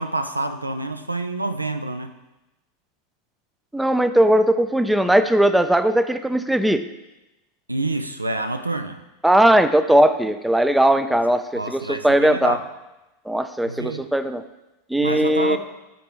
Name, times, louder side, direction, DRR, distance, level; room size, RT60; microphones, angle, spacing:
voice 1, 0.0-2.1 7.7-9.0 11.5-12.6 13.7-14.1 15.0-15.6, right 2 dB, 85° right, 9 dB, 0.4 m, -27 dB
voice 2, 3.7-6.8 9.2-12.6 13.3-14.4 14.9-15.6, right 1 dB, 5° right, 10 dB, 0.4 m, -18 dB
12.0 x 4.3 x 3.0 m, 1.0 s
figure-of-eight pair, 85°, 0 cm